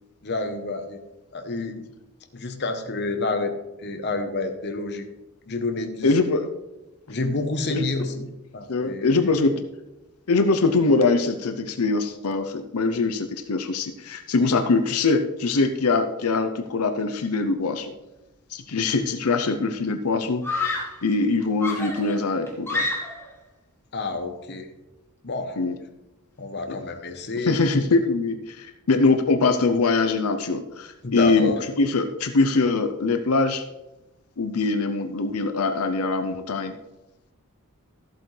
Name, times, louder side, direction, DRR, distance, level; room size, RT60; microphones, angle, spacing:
voice 1, 0.2-1.0 1.3-1.8 2.3-5.0 5.5-6.1 7.1-8.3 8.5-9.3 14.4-14.6 23.9-24.7 25.2-25.6 26.4-27.6 31.0-31.6, left 3 dB, 50° left, 6 dB, 1.0 m, -29 dB
voice 2, 6.0-6.5 7.7-7.8 8.7-9.7 10.3-17.9 18.5-20.5 21.0-22.9 25.6-25.8 26.7-26.8 27.4-33.6 34.4-36.8, left 3 dB, 90° left, 7 dB, 0.7 m, -23 dB
Screaming, 19.1-19.3 20.4-21.1 21.6-23.4, left 3 dB, 10° left, 1.4 m, -29 dB
14.0 x 7.8 x 3.3 m, 0.98 s
head